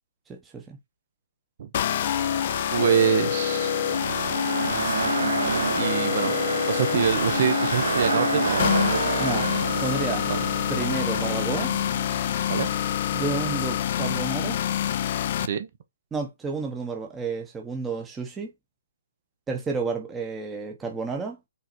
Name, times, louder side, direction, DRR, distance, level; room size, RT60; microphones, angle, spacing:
voice 1, 0.3-0.8 9.2-9.5 9.8-10.3 10.7-11.7 13.1-14.6 16.1-18.5 19.5-21.4, right 4 dB, 10° right, 1.0 m, -31 dB
sound 1, 1.7-15.5, left 10 dB, 40° left, 0.5 m, -26 dB
sound 2, 1.9-13.3, right 5 dB, 75° right, 0.4 m, -30 dB
voice 2, 2.7-3.7 4.6-6.4 6.7-8.9 10.3-10.4 12.5-12.7 15.4-15.7, right 8 dB, 45° right, 1.0 m, -26 dB
5.5 x 3.8 x 4.5 m
hypercardioid pair, 165°, 0 cm